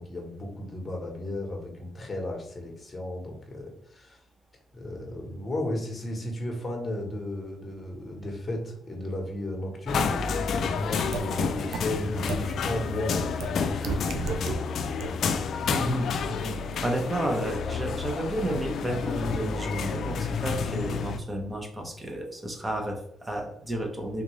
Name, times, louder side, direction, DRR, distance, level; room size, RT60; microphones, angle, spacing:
voice 1, 0.0-4.2 4.7-10.4 10.6-13.2 13.7-14.6, left 1 dB, 25° left, 1 dB, 1.1 m, -34 dB
sound 1, 9.9-21.2, left 5 dB, 65° left, 0.3 m, -30 dB
sound 2, 11.1-11.2 11.7-11.8 12.3-12.4 13.4-13.5 13.8-14.6 15.0-15.1, right 5 dB, 80° right, 0.4 m, -30 dB
voice 2, 15.7-24.2, right 1 dB, 20° right, 2 dB, 0.8 m, -31 dB
3.5 x 2.6 x 3.1 m, 0.70 s
cardioid pair, 90°, 0 cm